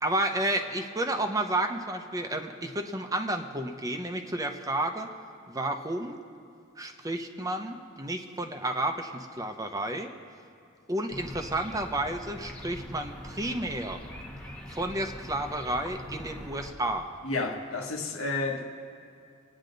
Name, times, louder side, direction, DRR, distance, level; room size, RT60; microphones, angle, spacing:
voice 1, 0.0-5.1 5.5-6.2 6.8-9.1 9.4-10.1 10.9-14.0 14.7-17.1, right 1 dB, 15° right, 0.8 m, -31 dB
sound 1, 11.1-16.7, left 1 dB, 5° left, 1.0 m, -42 dB
voice 2, 17.2-18.6, left 3 dB, 85° left, 1.5 m, -31 dB
24.5 x 9.7 x 3.9 m
head